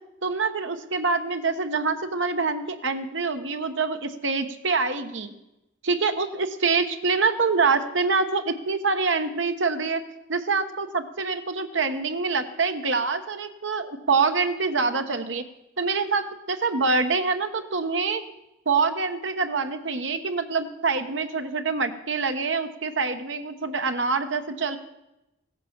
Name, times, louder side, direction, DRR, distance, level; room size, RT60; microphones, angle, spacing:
voice 1, 0.2-5.4 5.8-10.0 10.3-15.4 15.8-18.2 18.7-24.8, right 4 dB, 75° right, 8 dB, 1.1 m, -25 dB
16.0 x 8.2 x 7.3 m, 0.92 s
head